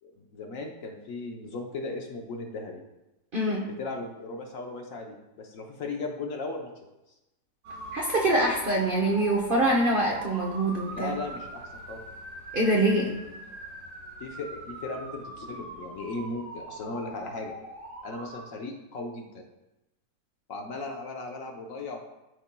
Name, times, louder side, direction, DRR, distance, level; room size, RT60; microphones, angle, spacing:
voice 1, 0.0-2.8 3.8-6.7 10.9-12.0 14.2-17.5 18.0-19.4 20.5-22.0, left 3 dB, 60° left, 2 dB, 1.1 m, -37 dB
voice 2, 3.3-3.7 7.9-11.1 12.5-13.2, right 1 dB, 45° right, -2 dB, 0.8 m, -24 dB
sound 1, 7.6-18.4, right 1 dB, 65° right, 2.3 m, -42 dB
12.0 x 4.2 x 2.2 m, 0.96 s
omnidirectional pair, 1.8 m